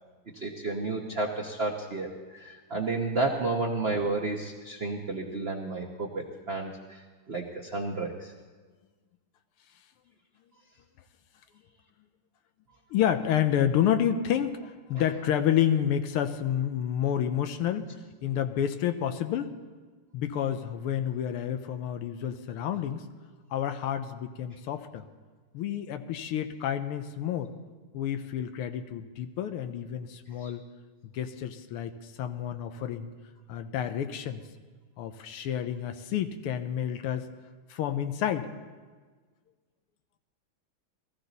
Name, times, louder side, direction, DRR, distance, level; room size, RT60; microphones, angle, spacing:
voice 1, 0.3-7.0 7.3-8.3 30.4-30.5, right 3 dB, 45° right, 0 dB, 0.8 m, -31 dB
voice 2, 12.9-17.9 18.2-19.5 20.1-23.0 23.5-25.1 25.5-27.5 27.9-30.6 31.1-31.9 32.2-33.1 33.5-34.4 35.0-37.3 37.7-38.5, left 10 dB, 85° left, 8 dB, 1.7 m, -29 dB
19.5 x 14.5 x 4.0 m, 1.4 s
omnidirectional pair, 2.4 m